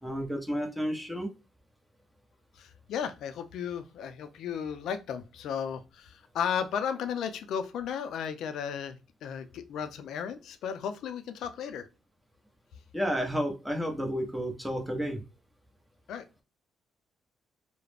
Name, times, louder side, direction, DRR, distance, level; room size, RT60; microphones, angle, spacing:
voice 1, 0.0-1.3 12.9-15.2, equal, 5° right, 2 dB, 0.8 m, -31 dB
voice 2, 2.6-11.9 16.1-16.2, left 7 dB, 75° left, 9 dB, 0.4 m, -34 dB
2.4 x 2.0 x 3.3 m, 0.30 s
cardioid pair, 90°, 0 cm